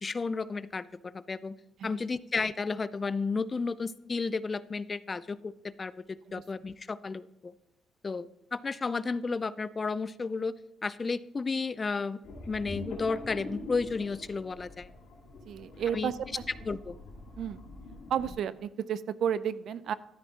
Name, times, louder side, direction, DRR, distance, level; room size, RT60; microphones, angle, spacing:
voice 1, 0.0-1.5 1.8-7.5 8.0-10.5 10.8-12.2 12.5-14.9 15.9-16.1 16.6-17.0, left 4 dB, 30° left, 17 dB, 0.4 m, -33 dB
sound 1, 12.2-18.3, left 2 dB, 90° left, 2.6 m, -44 dB
voice 2, 15.5-16.2 16.7-16.8 17.4-17.6 18.1-19.9, right 9 dB, 65° right, 17 dB, 0.4 m, -32 dB
12.5 x 9.9 x 2.8 m, 0.87 s
cardioid pair, 90°, 0 cm